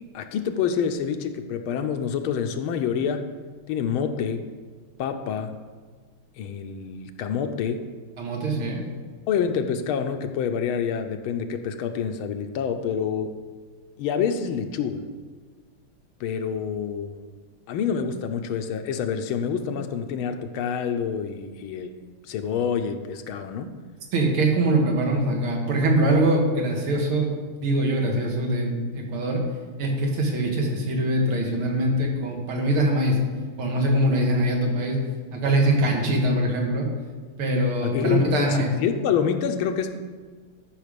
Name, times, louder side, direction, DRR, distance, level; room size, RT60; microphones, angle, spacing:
voice 1, 0.1-3.3 3.7-4.4 5.0-5.5 6.4-7.9 9.3-13.3 14.0-15.1 16.2-17.2 17.7-21.9 22.3-23.8 37.8-40.1, left 7 dB, 85° left, 7 dB, 1.6 m, -27 dB
voice 2, 8.2-8.8 24.1-29.4 29.8-33.2 33.6-35.0 35.3-36.9 37.4-38.7, right 1 dB, 85° right, 1 dB, 2.5 m, -23 dB
12.5 x 5.7 x 5.1 m, 1.5 s
omnidirectional pair, 2.3 m